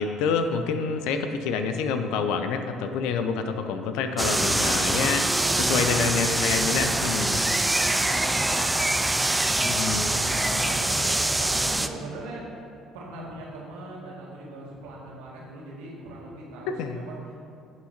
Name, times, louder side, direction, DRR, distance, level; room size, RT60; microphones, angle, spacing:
voice 1, 0.0-5.3 5.6-7.4 9.6-10.1 16.7-17.0, left 5 dB, 60° left, 8 dB, 0.5 m, -27 dB
sound 1, 4.2-11.9, right 1 dB, 10° right, 0.5 m, -24 dB
voice 2, 5.3-5.9 6.5-8.8 9.1-12.5 12.9-17.3, right 2 dB, 65° right, -4 dB, 2.0 m, -39 dB
Wind instrument woodwind instrument, 7.8-11.6, left 3 dB, 20° left, 2.2 m, -41 dB
16.0 x 5.9 x 2.9 m, 2.4 s
figure-of-eight pair, 55°, 0 cm